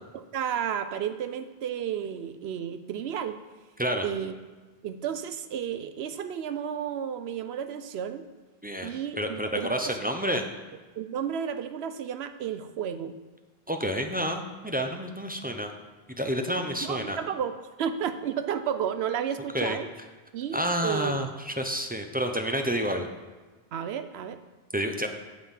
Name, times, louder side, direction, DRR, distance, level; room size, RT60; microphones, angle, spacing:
voice 1, 0.3-3.4 4.0-4.3 4.8-8.3 8.8-10.0 11.0-13.1 16.8-19.9 20.3-21.2 23.7-24.4, right 8 dB, 90° right, 10 dB, 0.9 m, -32 dB
voice 2, 8.6-10.4 13.7-15.7 16.2-17.2 19.5-19.8 20.5-23.1 24.7-25.1, equal, 10° right, 4 dB, 0.6 m, -29 dB
8.4 x 5.7 x 7.2 m, 1.3 s
omnidirectional pair, 1.0 m